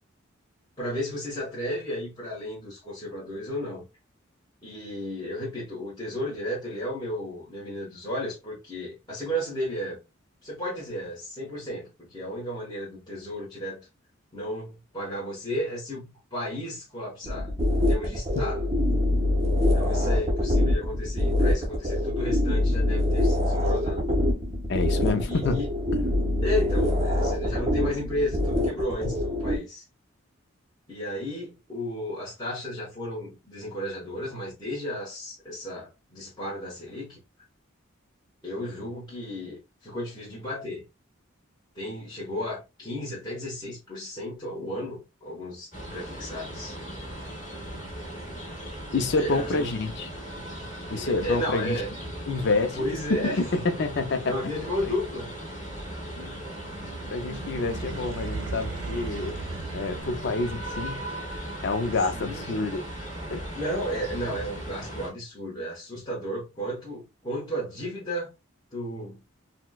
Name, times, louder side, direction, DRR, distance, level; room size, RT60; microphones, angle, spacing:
voice 1, 0.8-3.8 4.6-10.0 10.4-13.8 14.3-18.7 19.7-24.1 25.2-25.7 26.4-29.8 30.9-37.2 38.4-40.8 41.7-46.8 49.2-49.7 50.9-51.9 52.7-53.7 54.2-55.4 62.1-62.4 63.5-68.3 68.7-69.2, equal, 20° left, 1.1 m, -33 dB
sound 1, 17.2-29.6, left 1 dB, 30° right, 0.7 m, -24 dB
voice 2, 24.7-25.6 48.9-50.1 50.9-51.8 52.3-54.3 54.8-54.9 56.2-56.3 57.1-59.4 59.7-61.1 61.6-62.8 63.3-63.5, left 3 dB, 55° left, 0.5 m, -28 dB
sound 2, 45.7-65.1, right 1 dB, 35° left, 1.5 m, -38 dB
sound 3, 56.5-60.7, right 4 dB, 70° right, 0.4 m, -37 dB
4.2 x 2.1 x 2.3 m
head